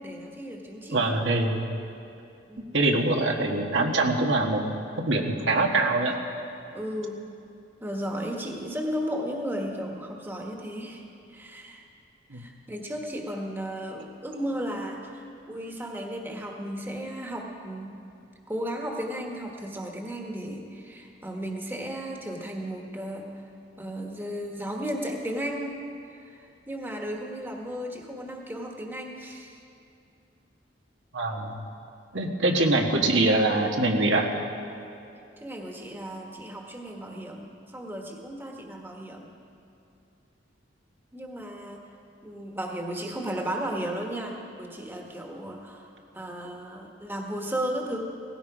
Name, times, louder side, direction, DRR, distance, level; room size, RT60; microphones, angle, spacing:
voice 1, 0.0-1.1 2.5-2.8 6.7-7.2 7.8-11.0 11.3-11.9 12.3-18.1 18.5-23.4 23.8-25.7 26.1-26.4 26.7-29.6 35.4-39.3 41.1-41.8 42.2-48.0, equal, 10° right, 1 dB, 1.3 m, -34 dB
voice 2, 0.9-1.7 2.7-4.6 5.0-6.2 12.3-12.5 31.1-31.5 32.1-34.3, right 2 dB, 85° right, 2 dB, 1.5 m, -24 dB
17.5 x 16.5 x 5.0 m, 2.6 s
head